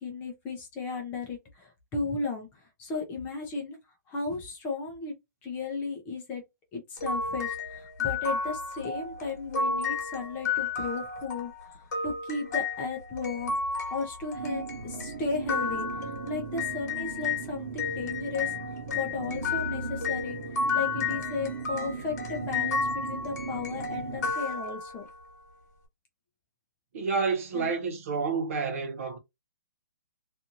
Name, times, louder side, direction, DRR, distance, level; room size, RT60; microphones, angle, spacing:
voice 1, 0.0-3.8 4.1-5.1 5.4-6.4 6.7-13.6 13.9-18.5 18.9-25.1 27.5-27.7, left 4 dB, 15° left, 0.6 m, -35 dB
sound 1, 7.0-17.4 17.8-25.1, left 4 dB, 55° left, 1.2 m, -32 dB
sound 2, 14.3-24.3, right 4 dB, 75° right, 1.0 m, -38 dB
voice 2, 26.9-29.2, right 5 dB, 45° right, 1.1 m, -29 dB
2.6 x 2.5 x 2.8 m
hypercardioid pair, 160°, 10 cm